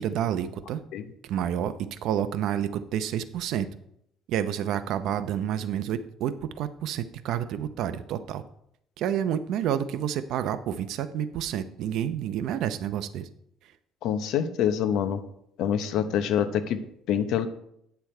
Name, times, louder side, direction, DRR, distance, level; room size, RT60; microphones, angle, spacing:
voice 1, 0.0-0.8 1.2-3.7 4.3-8.4 9.0-13.3, right 10 dB, 65° right, 12 dB, 0.6 m, -29 dB
voice 2, 14.0-15.2 15.6-17.5, left 9 dB, 70° left, 10 dB, 0.8 m, -26 dB
9.5 x 6.9 x 4.4 m, 0.75 s
cardioid pair, 135°, 0 cm